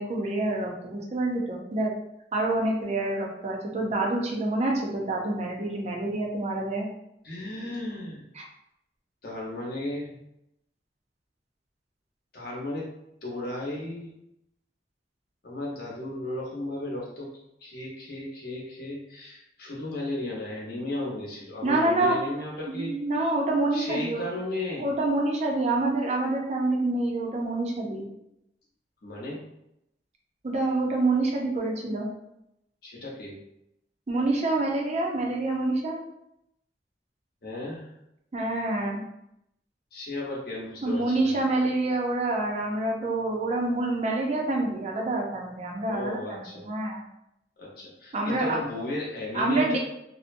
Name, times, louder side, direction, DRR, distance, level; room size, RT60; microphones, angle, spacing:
voice 1, 0.0-1.9 2.3-6.9 8.4-8.5 21.6-22.2 22.7-24.2 24.8-28.1 30.4-32.1 34.1-36.0 38.3-39.0 40.8-47.0 48.1-48.6 49.3-49.8, right 2 dB, 40° right, 0 dB, 0.5 m, -27 dB
voice 2, 7.2-8.2 9.2-10.2 12.3-12.9 13.2-14.1 15.4-17.3 17.6-22.9 23.7-24.9 29.0-29.4 32.8-33.4 37.4-37.9 39.9-41.4 45.9-46.7 47.6-49.8, left 2 dB, 55° left, -4 dB, 0.8 m, -34 dB
2.5 x 2.0 x 2.5 m, 0.81 s
head